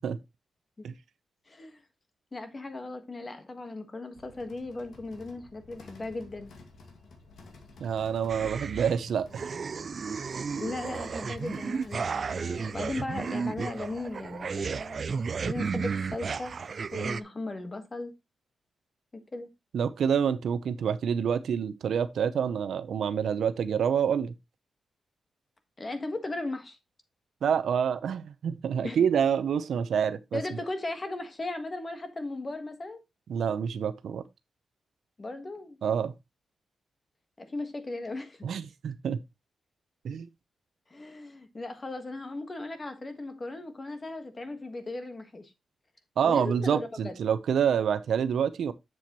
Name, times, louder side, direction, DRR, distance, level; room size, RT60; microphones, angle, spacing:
voice 1, 1.5-1.8 2.3-6.5 8.4-8.5 10.6-15.0 15.5-16.5 16.9-18.1 19.3-19.5 25.8-26.8 28.8-29.0 30.3-33.0 35.2-35.8 37.4-38.5 40.9-45.5 46.2-47.2, left 2 dB, 25° left, 1.4 m, -37 dB
sound 1, 4.1-15.3, left 3 dB, 85° left, 2.0 m, -53 dB
voice 2, 7.8-9.4 19.7-24.3 27.4-30.4 33.3-34.2 35.8-36.1 38.4-39.2 40.0-40.3 46.2-48.7, right 7 dB, 80° right, 0.7 m, -27 dB
sound 2, 8.3-9.0 9.3-17.2, right 5 dB, 45° right, 0.3 m, -33 dB
7.7 x 7.2 x 3.0 m
wide cardioid pair, 135°, 0 cm